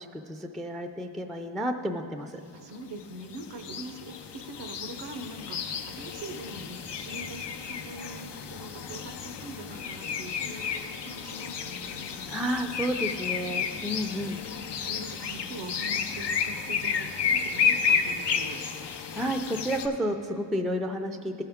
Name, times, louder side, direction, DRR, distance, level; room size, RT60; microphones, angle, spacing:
voice 1, 0.0-2.4 12.3-14.4 14.8-14.9 19.1-21.4, equal, ahead, 6 dB, 0.3 m, -31 dB
voice 2, 2.5-12.4 12.8-12.9 13.7-13.8 14.8-18.6, right 1 dB, 90° right, 7 dB, 0.7 m, -43 dB
sound 1, 3.0-19.9, left 6 dB, 80° left, 0.6 m, -32 dB
14.5 x 5.7 x 3.5 m, 2.5 s
cardioid pair, 80°, 42 cm